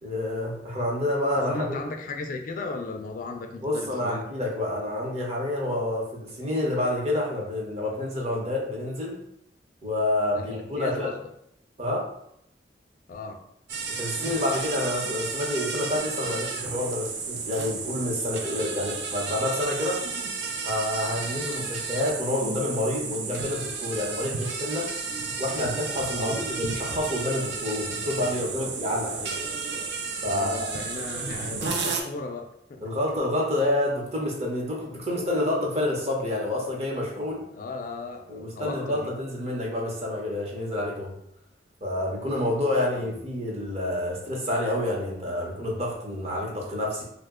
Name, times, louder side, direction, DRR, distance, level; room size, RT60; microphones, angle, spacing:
voice 1, 0.0-1.8 3.6-9.2 9.8-11.1 11.8-12.0 13.9-20.0 20.6-24.9 25.4-29.3 30.2-30.7 32.8-37.4 38.3-41.1 41.8-47.0, left 1 dB, 40° right, -2 dB, 0.8 m, -28 dB
voice 2, 1.3-4.3 10.3-11.2 13.1-13.4 18.4-18.7 26.1-26.4 28.0-28.7 30.2-32.9 37.3-39.1 42.9-43.2, left 3 dB, 50° left, 4 dB, 0.3 m, -36 dB
sound 1, 13.7-32.0, right 4 dB, 70° right, 0.5 m, -32 dB
2.8 x 2.1 x 3.5 m, 0.74 s
head